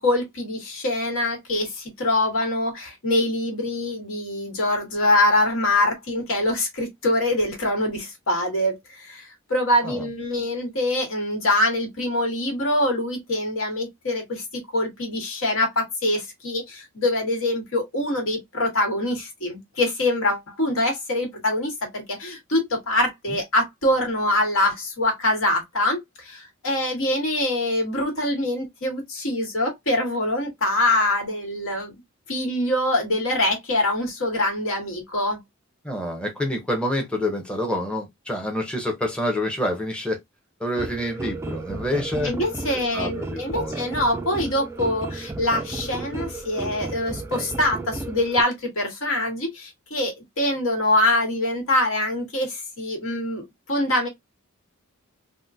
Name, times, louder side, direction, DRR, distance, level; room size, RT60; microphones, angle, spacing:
voice 1, 0.0-31.9 32.3-35.4 42.2-54.1, left 1 dB, 75° left, 1.4 m, -24 dB
voice 2, 35.8-40.2 40.6-42.3 42.9-43.8, left 1 dB, 5° left, 0.7 m, -27 dB
sound 1, 40.8-48.4, right 2 dB, 15° right, 0.3 m, -33 dB
3.6 x 2.2 x 2.6 m
head